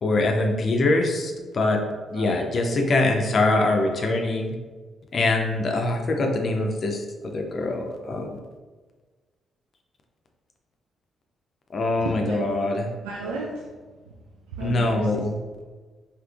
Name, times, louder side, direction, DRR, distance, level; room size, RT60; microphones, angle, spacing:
voice 1, 0.0-1.8 2.1-4.5 5.1-7.0 7.3-8.4 11.7-12.9 14.6-15.4, left 2 dB, 55° left, 3 dB, 0.4 m, -23 dB
voice 2, 2.7-3.1 3.5-4.1 12.1-12.4 13.0-13.7 14.0-14.1 14.5-15.6, right 3 dB, 80° right, -3 dB, 0.3 m, -35 dB
3.5 x 2.7 x 2.3 m, 1.3 s
hypercardioid pair, 40°, 0 cm